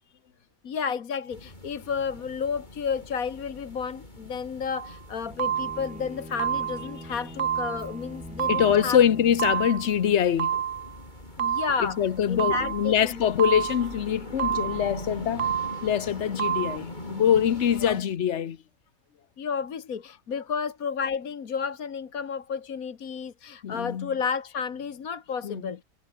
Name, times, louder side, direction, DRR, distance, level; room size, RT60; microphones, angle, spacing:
voice 1, 0.6-9.0 11.4-12.0 12.3-13.2 17.8-18.0 19.4-25.8, left 6 dB, 75° left, 1.9 m, -32 dB
sound 1, 1.3-18.0, left 1 dB, 30° left, 5.8 m, -42 dB
sound 2, 4.7-5.0 5.4-6.0 6.4-7.0 7.4-8.0 8.4-9.0 9.4-10.0 10.4-11.0 11.4-12.0 12.4-13.0 13.4-14.0 14.4-15.0 15.4-16.0 16.4-16.8, right 9 dB, 55° right, 0.6 m, -29 dB
Bowed string instrument, 5.2-10.1, equal, 5° right, 7.3 m, -44 dB
voice 2, 8.5-10.6 11.8-15.6 15.8-18.6 23.6-24.1 25.4-25.7, left 9 dB, 55° left, 1.2 m, -24 dB
omnidirectional pair, 1.5 m